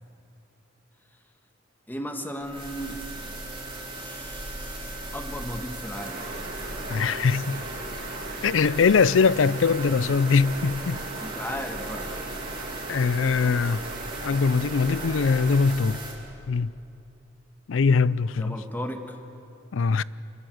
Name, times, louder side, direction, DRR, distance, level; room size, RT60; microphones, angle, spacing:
voice 1, 1.9-3.0 4.0-6.2 11.2-12.1 18.4-19.2, equal, 10° left, 1.7 m, -36 dB
sound 1, 2.4-16.1, right 2 dB, 30° right, 4.2 m, -38 dB
sound 2, 5.9-15.8, right 2 dB, 50° right, 3.0 m, -38 dB
voice 2, 6.9-7.6 8.4-11.0 12.9-13.8 14.2-16.0 16.5-16.7 17.7-18.6 19.7-20.0, left 5 dB, 85° left, 0.5 m, -22 dB
26.0 x 21.0 x 7.9 m
head